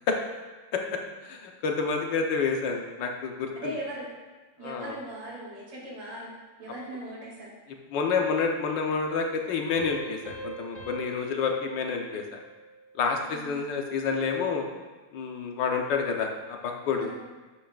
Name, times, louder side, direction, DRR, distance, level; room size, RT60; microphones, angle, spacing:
voice 1, 0.7-3.7 4.6-5.0 7.9-12.2 13.0-14.7 15.1-17.1, left 5 dB, 70° left, 2 dB, 1.6 m, -29 dB
voice 2, 3.5-4.1 4.6-6.3 6.6-7.5 13.3-13.7 16.9-17.2, right 1 dB, 75° right, -5 dB, 3.3 m, -39 dB
sound 1, 9.7-13.0, right 3 dB, 40° left, 2.7 m, -43 dB
11.5 x 8.3 x 2.5 m, 1.3 s
omnidirectional pair, 2.1 m